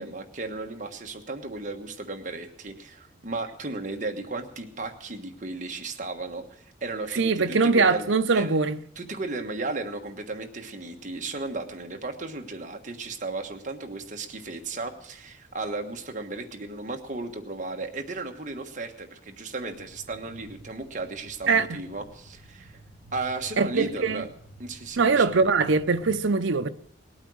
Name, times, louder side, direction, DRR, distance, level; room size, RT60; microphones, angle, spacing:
voice 1, 0.0-8.1 8.3-8.5 9.0-22.8 23.1-24.3 24.6-25.3, right 3 dB, 40° right, 1.4 m, -35 dB
voice 2, 7.1-8.8 21.5-21.8 23.6-24.2 25.0-26.7, right 4 dB, 75° right, 0.7 m, -22 dB
sound 1, 19.6-26.2, right 2 dB, 30° left, 7.4 m, -51 dB
19.5 x 8.8 x 6.3 m
head